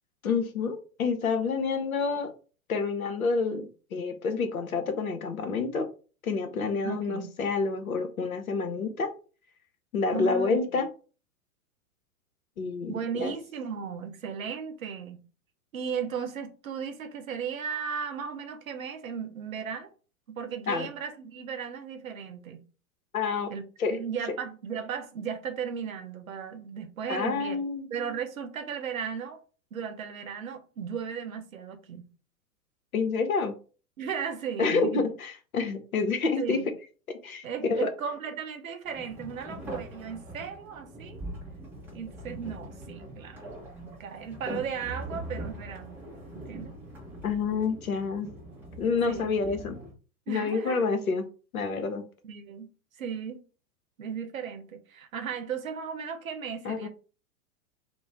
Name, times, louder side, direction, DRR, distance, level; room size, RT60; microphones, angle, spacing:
voice 1, 0.2-2.3 2.7-5.9 6.2-9.1 9.9-10.9 12.6-13.3 20.7-20.9 23.1-23.5 23.8-24.0 27.1-27.9 32.9-33.5 34.6-36.6 37.2-37.9 47.2-48.3 48.8-49.8 50.3-51.2 51.5-52.0 56.6-56.9, left 4 dB, 75° left, 0.7 m, -28 dB
voice 2, 6.8-7.3 10.1-10.6 12.9-15.2 15.7-19.9 20.3-22.6 23.5-27.6 27.9-29.4 29.7-32.1 34.0-35.1 36.4-36.7 37.4-41.2 41.9-43.4 44.0-46.0 46.3-46.7 49.1-49.3 50.3-50.9 52.2-52.7 53.0-53.4 54.0-56.9, right 7 dB, 70° right, 0.7 m, -36 dB
sound 1, 38.8-49.9, right 1 dB, 5° right, 0.5 m, -42 dB
2.4 x 2.1 x 3.2 m
figure-of-eight pair, 100°, 43 cm